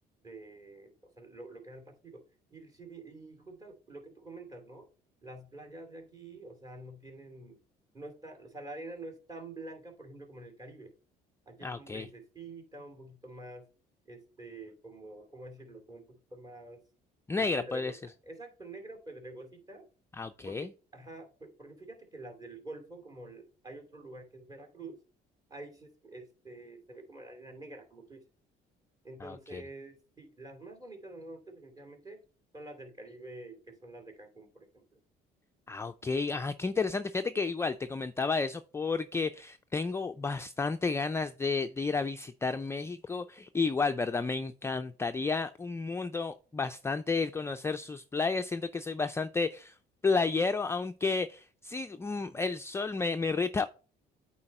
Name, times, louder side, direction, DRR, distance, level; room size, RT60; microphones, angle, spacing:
voice 1, 0.2-2.2 2.5-4.9 5.2-7.6 7.9-10.9 11.5-13.6 14.1-16.8 17.3-17.9 18.2-19.8 20.4-25.0 25.5-28.2 29.0-32.2 32.5-35.0, right 2 dB, 20° right, 2.7 m, -47 dB
voice 2, 11.6-12.1 17.3-17.9 20.1-20.7 29.2-29.6 35.7-49.7 50.0-53.7, left 4 dB, 15° left, 0.4 m, -31 dB
8.7 x 4.3 x 4.2 m
cardioid pair, 110°, 17 cm